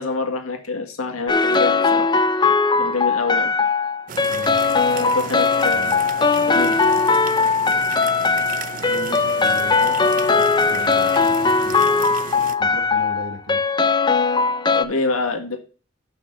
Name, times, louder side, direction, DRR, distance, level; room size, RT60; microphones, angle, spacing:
voice 1, 0.0-2.1 2.8-3.5 4.9-6.0 6.5-6.8 14.7-15.6, left 3 dB, 85° left, 3 dB, 1.8 m, -26 dB
sexy funk + strings & piano, 1.3-14.9, left 4 dB, 20° left, 0.5 m, -19 dB
sound 1, 4.1-12.6, right 6 dB, 40° right, 0.4 m, -35 dB
voice 2, 4.3-4.6 5.7-6.0 8.9-10.0 10.3-11.9 12.6-13.6, right 1 dB, 65° right, 7 dB, 1.4 m, -36 dB
6.6 x 5.6 x 5.4 m, 0.38 s
head